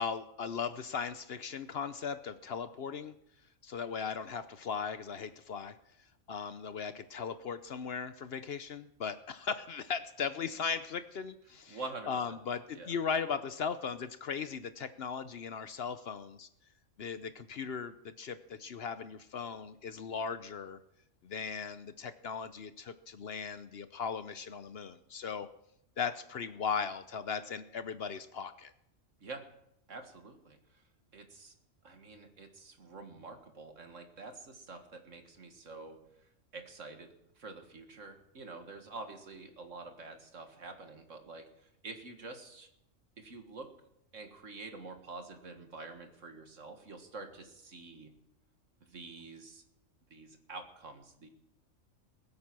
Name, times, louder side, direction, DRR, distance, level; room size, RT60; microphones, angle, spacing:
voice 1, 0.0-3.1 3.6-5.7 6.3-11.8 12.1-16.5 17.0-20.8 21.2-25.5 26.0-28.7, left 6 dB, 55° left, 12 dB, 0.8 m, -38 dB
voice 2, 11.7-12.4 12.7-13.0 29.2-29.5 29.9-30.8 31.1-31.5 31.8-36.0 36.5-42.7 43.2-43.7 44.1-48.1 48.8-49.6 50.1-51.3, right 3 dB, 70° right, 5 dB, 2.1 m, -47 dB
20.5 x 8.7 x 6.1 m, 0.78 s
omnidirectional pair, 1.4 m